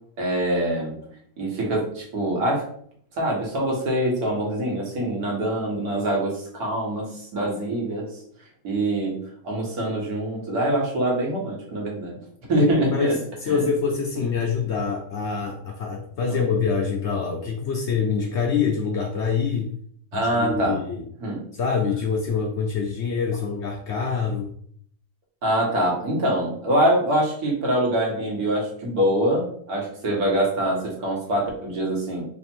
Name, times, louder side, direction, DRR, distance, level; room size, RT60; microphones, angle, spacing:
voice 1, 0.2-0.9 1.4-2.6 3.1-8.1 8.6-9.2 9.4-12.2 12.5-13.1 13.5-13.7 16.3-16.4 20.1-20.8 21.2-21.4 25.4-32.3, right 1 dB, 60° right, -2 dB, 1.7 m, -24 dB
voice 2, 12.6-19.7 20.1-21.0 21.5-24.5, left 5 dB, 90° left, 0 dB, 0.6 m, -25 dB
3.5 x 2.5 x 4.3 m, 0.63 s
omnidirectional pair, 1.8 m